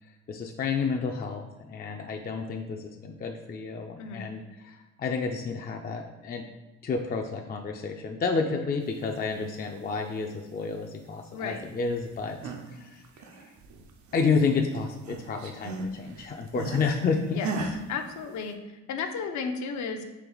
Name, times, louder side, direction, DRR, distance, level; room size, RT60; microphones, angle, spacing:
voice 1, 0.0-6.5 6.8-13.1 13.3-13.5 14.1-17.5, left 4 dB, 30° left, 3 dB, 0.4 m, -30 dB
voice 2, 11.3-11.6 17.3-17.5 17.9-20.0, left 5 dB, 70° left, 6 dB, 0.6 m, -33 dB
sound 1, 12.1-12.7 13.0-14.5 14.7-16.9 17.4-17.8, right 3 dB, 70° right, 0.7 m, -36 dB
4.6 x 2.9 x 3.9 m, 1.1 s
cardioid pair, 90°, 30 cm